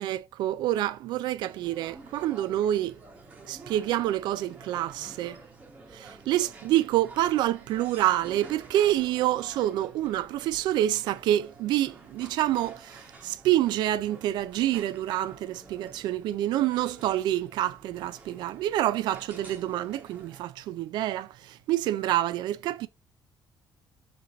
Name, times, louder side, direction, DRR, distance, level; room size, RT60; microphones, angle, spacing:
voice 1, 0.0-3.0 3.5-5.4 5.9-22.9, right 13 dB, 65° right, 0.3 m, -27 dB
sound 1, 1.4-20.4, right 3 dB, 15° right, 0.9 m, -50 dB
4.4 x 2.6 x 3.7 m
cardioid pair, 165°, 8 cm